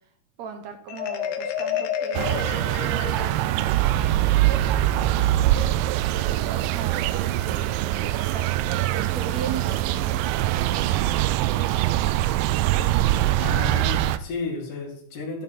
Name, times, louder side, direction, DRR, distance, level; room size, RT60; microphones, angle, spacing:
voice 1, 0.4-2.4 2.9-5.0 6.1-11.1, right 6 dB, 65° right, 6 dB, 1.9 m, -38 dB
Marimba xylophone, 0.9-3.7, left 8 dB, 90° left, 2.8 m, -30 dB
sound 1, 2.1-14.2, right 14 dB, 85° right, 2.2 m, -23 dB
voice 2, 13.4-15.4, left 4 dB, 70° left, -1 dB, 3.9 m, -32 dB
14.0 x 8.0 x 4.2 m, 0.65 s
omnidirectional pair, 3.9 m